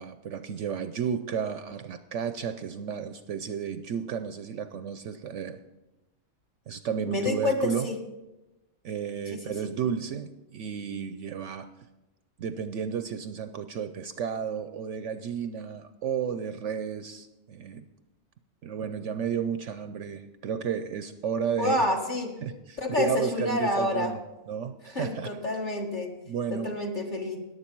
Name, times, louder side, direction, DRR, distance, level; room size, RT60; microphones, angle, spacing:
voice 1, 0.0-5.6 6.7-7.9 8.8-11.7 12.4-17.8 18.6-21.8 22.4-24.2 24.5-25.4 26.3-26.8, right 7 dB, 65° right, 10 dB, 0.8 m, -32 dB
voice 2, 7.1-8.0 9.3-9.7 21.6-22.3 22.8-24.1 24.9-26.1 26.5-27.4, left 2 dB, 35° left, 1 dB, 1.7 m, -28 dB
14.5 x 10.5 x 4.5 m, 1.0 s
omnidirectional pair, 1.5 m